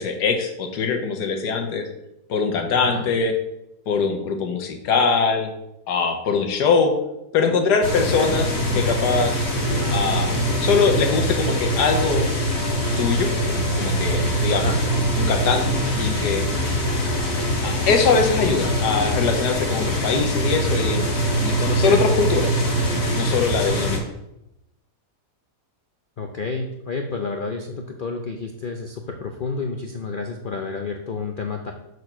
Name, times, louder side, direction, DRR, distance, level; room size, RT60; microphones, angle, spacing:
voice 1, 0.0-1.9 2.3-3.3 3.9-5.5 5.9-7.0 7.3-8.5 8.7-9.4 9.9-10.3 10.6-12.2 13.0-13.3 13.7-14.7 15.2-16.4 17.6-21.0 21.4-22.6 23.1-24.0, left 5 dB, 90° left, 5 dB, 1.5 m, -22 dB
voice 2, 2.7-3.1 8.1-8.3 14.5-14.8 21.8-22.1 26.2-31.7, left 4 dB, 65° left, 3 dB, 0.5 m, -30 dB
sound 1, 7.8-24.0, equal, 40° left, 1.8 m, -23 dB
6.4 x 4.6 x 5.8 m, 0.87 s
omnidirectional pair, 1.7 m